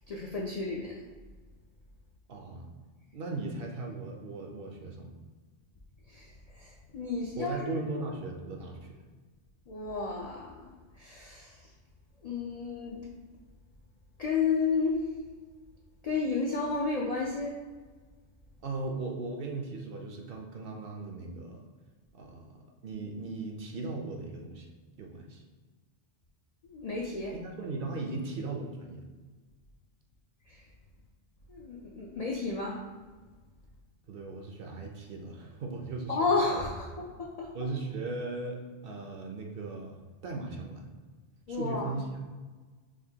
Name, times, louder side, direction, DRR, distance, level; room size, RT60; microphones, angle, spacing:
voice 1, 0.1-1.0 6.1-7.8 9.7-11.6 12.2-13.1 14.2-15.0 16.0-17.6 26.6-27.3 30.5-30.6 31.5-32.8 36.1-36.9 37.2-37.5 41.5-41.9, left 4 dB, 65° left, -3 dB, 0.4 m, -32 dB
voice 2, 2.3-2.7 3.1-5.1 7.3-9.0 18.6-21.7 22.1-24.7 25.0-25.4 27.3-29.1 34.1-36.6 37.5-40.9 41.5-42.1, right 3 dB, 60° right, 1 dB, 0.7 m, -38 dB
4.9 x 2.2 x 2.7 m, 1.4 s
omnidirectional pair, 1.2 m